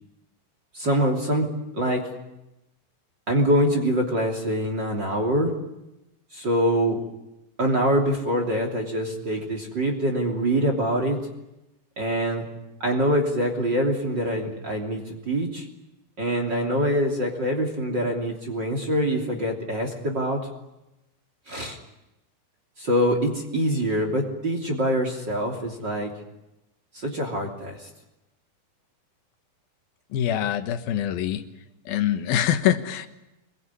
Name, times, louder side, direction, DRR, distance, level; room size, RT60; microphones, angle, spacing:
voice 1, 0.7-1.5 1.7-2.1 3.3-5.5 6.3-7.0 7.6-11.2 12.0-12.5 12.8-15.7 16.2-20.4 21.5-21.8 22.8-26.1 26.9-27.9, equal, 30° right, 3 dB, 3.4 m, -24 dB
voice 2, 30.1-31.4 31.9-33.1, left 10 dB, 80° left, 9 dB, 3.2 m, -24 dB
26.5 x 21.5 x 9.8 m, 0.93 s
omnidirectional pair, 4.2 m